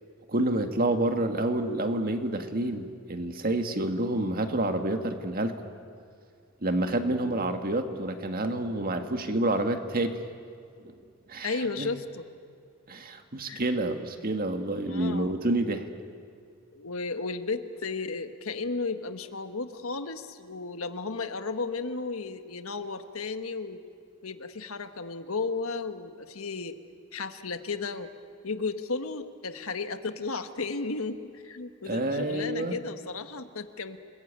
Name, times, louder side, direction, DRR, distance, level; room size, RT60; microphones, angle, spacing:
voice 1, 0.3-5.5 6.6-10.2 11.3-11.5 11.8-11.9 12.9-15.8 31.9-32.8, right 1 dB, 45° right, 6 dB, 1.9 m, -28 dB
voice 2, 11.4-12.2 13.5-13.6 14.9-15.3 16.7-23.8 24.2-26.7 27.1-28.1 28.4-34.0, left 4 dB, 85° left, 8 dB, 1.4 m, -34 dB
29.0 x 20.5 x 9.0 m, 2.3 s
head